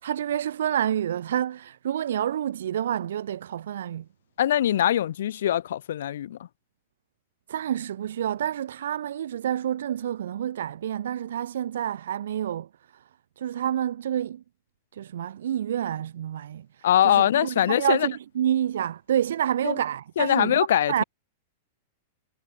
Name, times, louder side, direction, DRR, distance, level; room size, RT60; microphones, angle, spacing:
voice 1, 0.0-4.0 7.5-13.0 13.4-14.4 14.9-21.0, right 10 dB, 90° right, 1.6 m, -28 dB
voice 2, 4.4-6.5 16.8-18.1 19.6-19.7 20.2-21.0, left 11 dB, 75° left, 1.8 m, -22 dB
supercardioid pair, 170°, 0 cm